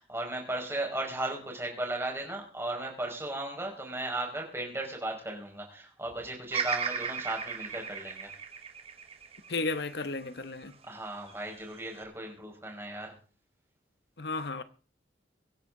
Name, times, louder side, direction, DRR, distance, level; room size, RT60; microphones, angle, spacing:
voice 1, 0.0-8.3 10.8-13.1, right 1 dB, 15° right, 5.0 m, -36 dB
Bird vocalization bird call bird song, 6.5-10.7 11.3-12.0, right 6 dB, 30° right, 1.7 m, -36 dB
voice 2, 9.5-10.7 14.2-14.6, left 3 dB, 60° left, 0.9 m, -33 dB
24.5 x 10.0 x 3.8 m
head